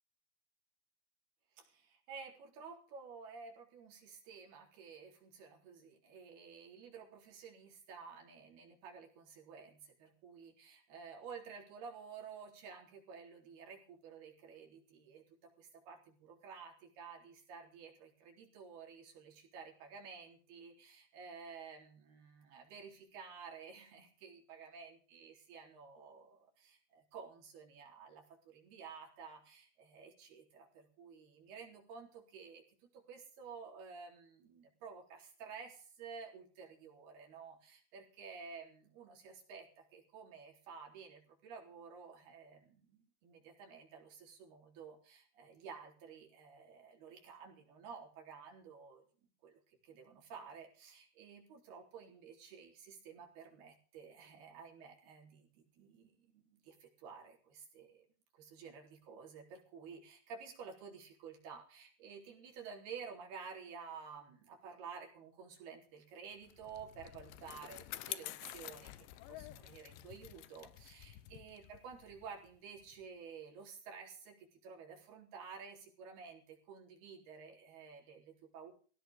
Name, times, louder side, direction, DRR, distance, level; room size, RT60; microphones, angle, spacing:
voice 1, 1.5-49.0 49.4-49.5 49.8-58.1 58.3-78.7, right 6 dB, 55° right, 0 dB, 5.6 m, -52 dB
Bicycle, 66.3-73.0, left 15 dB, 75° left, 2.9 m, -49 dB
17.0 x 17.0 x 3.7 m, 0.41 s
omnidirectional pair, 5.5 m